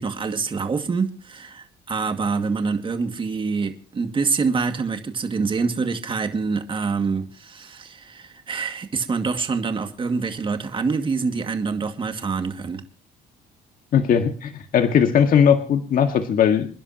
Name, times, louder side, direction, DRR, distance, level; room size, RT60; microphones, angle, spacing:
voice 1, 0.0-12.8, right 4 dB, 30° right, 2.3 m, -26 dB
voice 2, 13.9-16.7, left 8 dB, 55° left, 1.9 m, -18 dB
28.5 x 11.0 x 3.0 m
cardioid pair, 110°, 17 cm